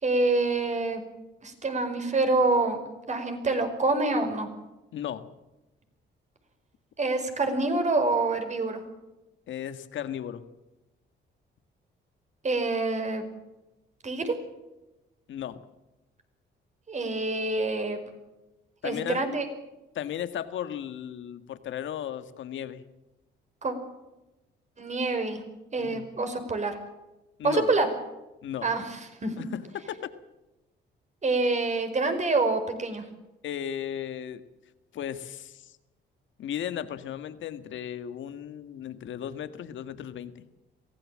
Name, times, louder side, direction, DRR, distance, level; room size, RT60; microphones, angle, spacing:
voice 1, 0.0-1.0 1.4-2.8 3.1-4.5 7.0-8.8 12.4-13.3 14.0-14.3 16.9-18.0 18.8-19.4 23.6-23.7 24.8-25.4 25.7-26.8 27.4-27.9 28.6-29.3 31.2-33.0, right 3 dB, 35° right, 7 dB, 5.1 m, -26 dB
voice 2, 4.9-5.3 9.5-10.4 15.3-15.6 18.8-19.2 20.0-22.8 25.8-26.1 27.4-27.7 28.4-28.7 29.4-30.1 33.4-34.4 34.9-35.8 36.4-40.5, left 10 dB, 75° left, 11 dB, 1.7 m, -35 dB
23.5 x 16.5 x 7.5 m, 0.99 s
cardioid pair, 90°, 20 cm